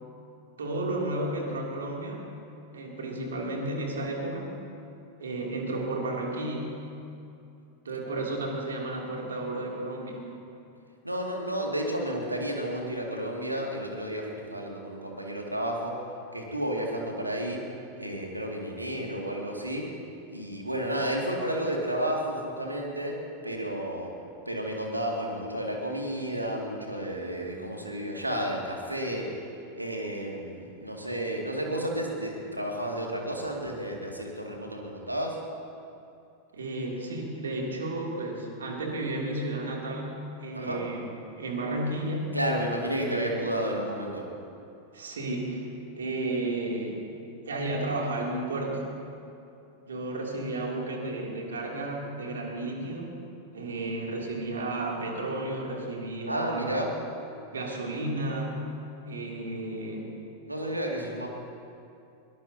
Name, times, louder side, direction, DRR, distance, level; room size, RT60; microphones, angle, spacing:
voice 1, 0.6-2.2 2.7-4.6 5.2-6.8 7.8-10.2 36.5-41.1 41.4-42.3 42.9-43.4 44.9-45.6 46.0-47.1 47.4-48.8 49.9-53.2 53.5-56.8 57.5-58.6 59.0-60.1, right 2 dB, 70° right, -1 dB, 2.9 m, -32 dB
voice 2, 11.0-15.9 16.3-17.6 18.0-19.9 20.3-23.2 23.4-24.1 24.5-29.3 29.8-35.4 40.5-40.8 42.3-44.3 56.3-56.9 60.5-61.3, right 1 dB, 85° right, 0 dB, 2.3 m, -31 dB
22.0 x 19.0 x 2.9 m, 2.7 s
figure-of-eight pair, 90°, 0 cm